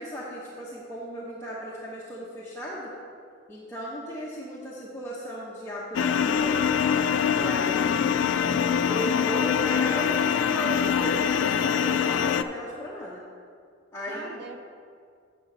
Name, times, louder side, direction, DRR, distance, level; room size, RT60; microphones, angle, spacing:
voice 1, 0.0-3.0 3.5-6.7 7.3-8.1 8.9-13.2 13.9-14.4, equal, 15° left, -6 dB, 0.8 m, -36 dB
sound 1, 5.9-12.4, left 7 dB, 75° left, 0.3 m, -24 dB
voice 2, 8.2-8.6 14.0-14.6, right 2 dB, 60° right, 3 dB, 0.8 m, -41 dB
6.9 x 4.9 x 6.7 m, 2.3 s
head